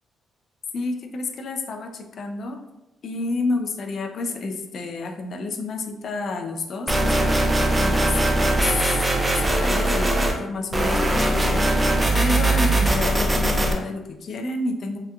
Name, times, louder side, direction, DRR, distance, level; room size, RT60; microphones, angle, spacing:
voice 1, 0.7-2.6 3.0-15.0, left 3 dB, 60° left, 5 dB, 0.3 m, -30 dB
sound 1, 6.9-10.4 10.7-13.7, right 1 dB, 20° right, 0.4 m, -20 dB
2.8 x 2.2 x 2.2 m, 0.91 s
supercardioid pair, 65°, 0 cm